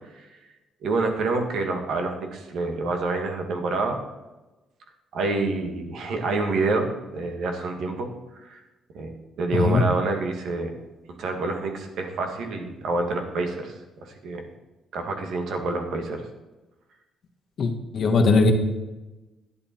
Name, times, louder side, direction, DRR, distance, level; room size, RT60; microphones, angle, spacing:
voice 1, 0.8-4.0 5.1-6.9 7.1-8.1 8.4-8.6 8.9-10.7 11.2-13.7 14.0-14.4 14.9-16.3, right 3 dB, 70° right, 4 dB, 1.8 m, -27 dB
voice 2, 17.6-18.5, left 3 dB, 55° left, 4 dB, 1.5 m, -20 dB
10.5 x 8.7 x 4.4 m, 1.1 s
cardioid pair, 90°, 0 cm